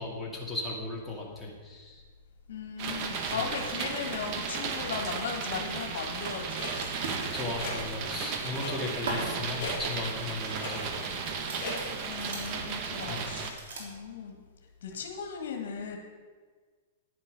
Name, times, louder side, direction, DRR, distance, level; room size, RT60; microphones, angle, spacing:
voice 1, 0.0-2.0 7.3-11.6 13.1-13.3, left 2 dB, 5° left, -5 dB, 2.3 m, -37 dB
sound 1, 1.9-13.8, right 2 dB, 75° right, 3.3 m, -44 dB
voice 2, 2.5-6.7 9.0-9.4 12.1-14.4 14.8-16.0, left 6 dB, 70° left, 3 dB, 1.8 m, -37 dB
sound 2, 2.8-13.5, right 5 dB, 40° right, 1.2 m, -35 dB
Clock, 6.5-12.1, left 3 dB, 45° left, 3.1 m, -41 dB
10.5 x 9.8 x 5.4 m, 1.5 s
hypercardioid pair, 150°, 0 cm